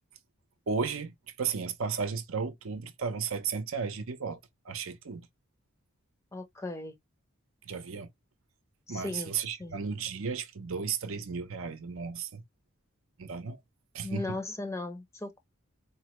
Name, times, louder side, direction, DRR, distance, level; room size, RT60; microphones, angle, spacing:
voice 1, 0.7-4.4 4.6-5.3 7.6-8.1 8.9-12.4 13.2-13.6 13.9-14.4, right 5 dB, 70° right, 0.7 m, -34 dB
voice 2, 6.3-7.0 8.9-9.8 14.0-15.4, left 2 dB, 15° left, 0.6 m, -37 dB
4.1 x 2.1 x 2.9 m
head